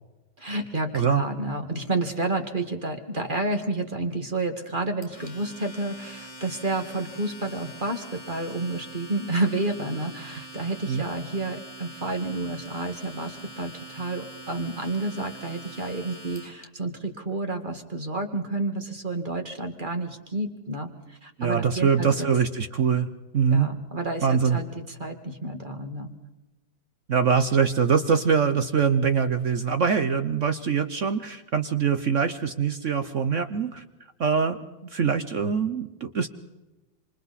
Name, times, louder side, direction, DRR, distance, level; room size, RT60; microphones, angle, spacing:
voice 1, 0.4-22.3 23.5-26.1, right 2 dB, 25° right, 5 dB, 1.9 m, -30 dB
Domestic sounds home sounds, 5.0-16.6, right 1 dB, 15° left, 2.2 m, -44 dB
voice 2, 21.4-23.1 23.3-23.7 24.2-24.6 27.1-33.8 34.2-36.3, right 6 dB, 50° right, 9 dB, 0.9 m, -23 dB
27.5 x 26.5 x 4.2 m, 1.1 s
omnidirectional pair, 2.2 m